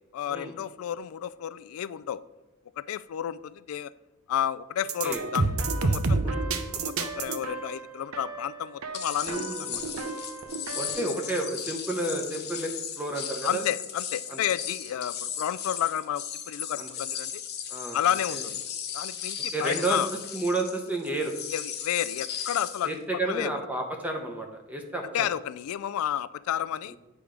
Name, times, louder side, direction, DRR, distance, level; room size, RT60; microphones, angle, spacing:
voice 1, 0.1-2.2 2.8-3.9 4.3-5.5 5.8-6.4 6.7-9.8 13.4-17.4 17.9-18.6 18.9-20.1 21.5-22.9 23.3-23.5 25.1-27.0, left 10 dB, 85° left, 16 dB, 0.3 m, -31 dB
sound 1, 4.8-11.2, right 3 dB, 90° right, 0.6 m, -30 dB
sound 2, 8.9-22.9, left 8 dB, 50° left, 0.7 m, -36 dB
voice 2, 9.2-9.8 10.7-12.7 13.0-13.6 14.3-14.4 16.8-16.9 17.7-18.0 18.3-18.4 19.5-20.0 20.3-21.3 22.8-25.3, right 2 dB, 5° right, 2 dB, 0.7 m, -31 dB
8.4 x 3.4 x 5.0 m, 1.1 s
head